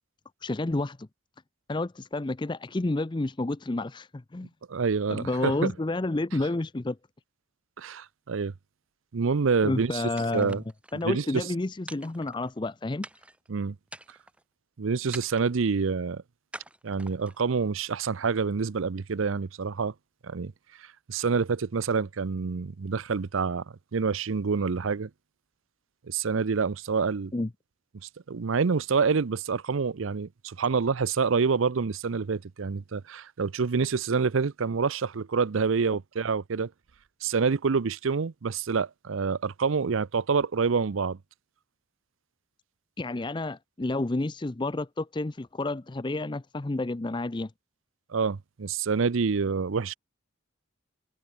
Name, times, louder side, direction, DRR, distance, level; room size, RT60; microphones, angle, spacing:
voice 1, 0.4-1.1 1.7-4.5 5.1-7.0 9.6-10.6 10.9-13.0 27.3-27.5 43.0-47.5, left 2 dB, 20° left, 0.5 m, -30 dB
voice 2, 4.7-5.7 7.8-8.5 9.1-10.0 10.3-10.6 11.0-11.5 13.5-13.8 14.8-16.2 16.8-19.9 20.2-20.5 21.1-23.6 23.9-25.1 26.1-27.3 28.0-36.7 37.2-41.2 48.1-50.0, right 5 dB, 75° right, 0.6 m, -27 dB
sound 1, 10.2-11.1 11.9-12.7 13.0-13.5 13.9-14.4 15.1-15.7 16.5-17.4, right 1 dB, 5° right, 1.0 m, -45 dB
head